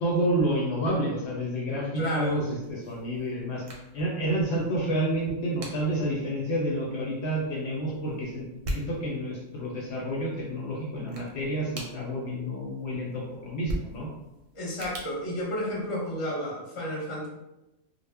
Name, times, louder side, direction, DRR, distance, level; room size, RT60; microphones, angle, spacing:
voice 1, 0.0-2.4 2.7-3.6 3.9-8.5 8.7-14.1, right 1 dB, 65° left, -3 dB, 0.8 m, -29 dB
voice 2, 2.0-2.4 14.5-17.3, equal, 30° left, -5 dB, 0.7 m, -31 dB
sound 1, 2.6-16.2, equal, 60° right, 0.7 m, -43 dB
2.1 x 2.0 x 3.3 m, 0.93 s
omnidirectional pair, 1.3 m